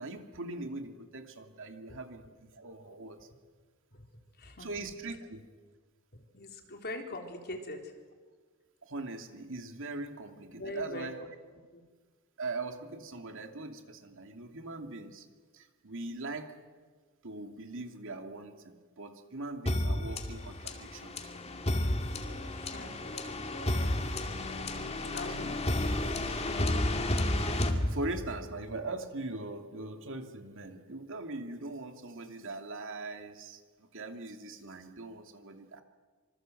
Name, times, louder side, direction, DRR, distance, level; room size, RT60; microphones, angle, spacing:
voice 1, 0.0-3.3 4.6-5.5 8.8-11.2 12.4-15.3 15.5-16.5 17.2-21.3 27.5-27.6 27.9-35.8, right 2 dB, 60° right, 5 dB, 2.7 m, -41 dB
voice 2, 4.4-4.7 6.3-7.9 10.5-11.3 11.7-11.8 22.5-22.9 25.1-25.5, left 2 dB, 45° left, 3 dB, 3.9 m, -42 dB
sound 1, 19.7-28.5, left 1 dB, 30° left, 2.4 m, -32 dB
26.0 x 25.5 x 7.9 m, 1.5 s
head